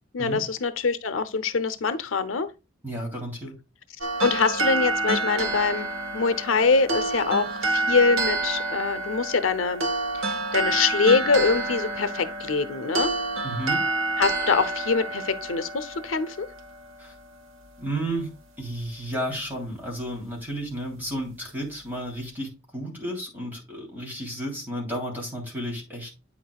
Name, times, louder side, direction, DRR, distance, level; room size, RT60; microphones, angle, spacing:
voice 1, 0.1-2.5 4.2-9.9 10.2-13.1 14.2-16.5, left 4 dB, 90° left, 0.7 m, -24 dB
voice 2, 2.8-3.6 13.4-13.8 17.0-17.1 17.8-18.3 18.6-26.2, right 1 dB, 10° right, 3.0 m, -32 dB
sound 1, 4.0-17.2, right 2 dB, 85° right, 1.2 m, -28 dB
9.0 x 6.0 x 2.3 m
head